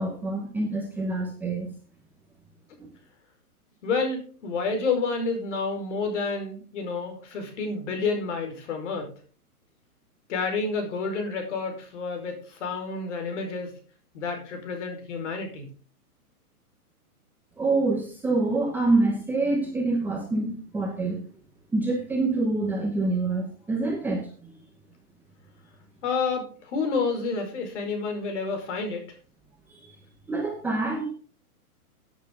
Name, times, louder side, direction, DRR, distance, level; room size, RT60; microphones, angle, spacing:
voice 1, 0.0-1.7 2.8-2.9 17.6-21.2 21.7-24.5 29.7-29.9 30.3-31.1, right 2 dB, 5° right, -1 dB, 0.9 m, -26 dB
voice 2, 3.8-9.1 10.3-13.8 14.1-15.7 26.0-29.1, left 4 dB, 50° left, 4 dB, 4.9 m, -29 dB
15.0 x 8.3 x 3.7 m, 0.40 s
hypercardioid pair, 160°, 45 cm